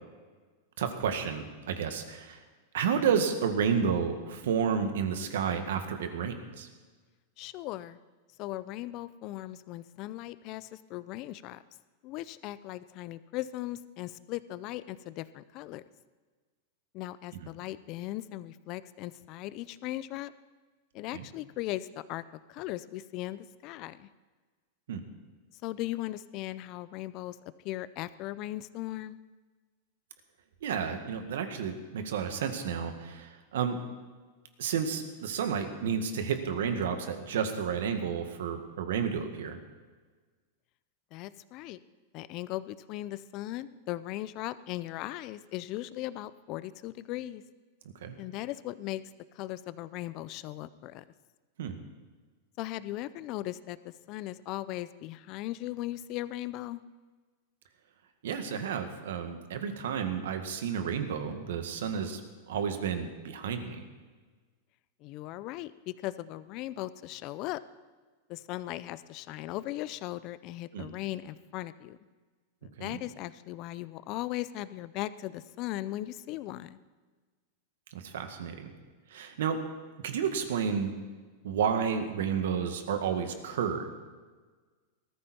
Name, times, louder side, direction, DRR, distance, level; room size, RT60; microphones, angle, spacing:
voice 1, 0.8-2.4 2.7-6.7 17.3-17.5 21.1-21.3 24.9-25.0 30.6-33.8 34.6-39.6 48.0-48.2 51.6-51.8 58.2-62.2 62.5-63.8 70.7-70.9 72.8-73.0 77.9-78.7 79.1-79.6 80.0-81.0 81.4-83.9, right 7 dB, 80° right, 7 dB, 1.9 m, -31 dB
voice 2, 7.4-8.0 8.4-11.6 12.0-15.8 16.9-20.3 20.9-22.2 22.5-24.1 25.6-27.4 27.6-29.2 41.1-41.8 42.1-47.4 48.2-49.0 49.4-51.0 52.6-56.8 65.0-67.6 68.3-72.0 72.6-76.8, left 15 dB, 40° left, 16 dB, 0.6 m, -38 dB
19.5 x 14.0 x 4.5 m, 1.4 s
supercardioid pair, 155°, 0 cm